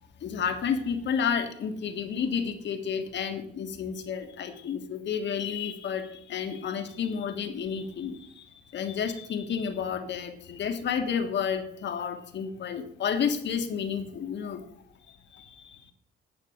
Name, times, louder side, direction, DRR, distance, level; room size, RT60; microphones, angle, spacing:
voice 1, 0.2-14.6 15.3-15.8, left 7 dB, 65° left, 6 dB, 1.5 m, -31 dB
9.8 x 5.8 x 7.1 m, 0.73 s
cardioid pair, 90°, 20 cm